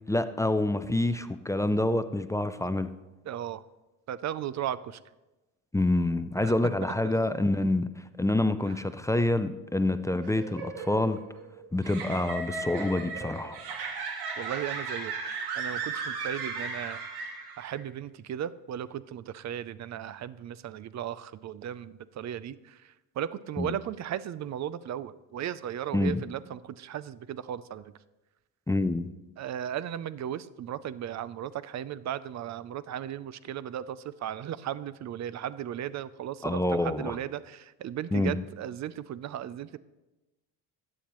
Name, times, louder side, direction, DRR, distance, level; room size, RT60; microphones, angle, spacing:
voice 1, 0.1-2.9 5.7-7.9 8.2-11.2 11.7-13.6 23.6-23.7 25.9-26.2 28.7-29.1 36.4-37.2 38.1-38.4, left 2 dB, 10° left, 11 dB, 0.4 m, -27 dB
voice 2, 3.3-3.6 4.1-5.0 6.4-6.5 8.7-8.8 14.4-17.0 17.6-27.9 29.4-39.8, right 10 dB, 45° right, 17 dB, 0.5 m, -36 dB
sound 1, 10.2-17.8, right 4 dB, 75° right, 2.0 m, -36 dB
12.5 x 8.6 x 3.0 m, 1.0 s
cardioid pair, 90°, 38 cm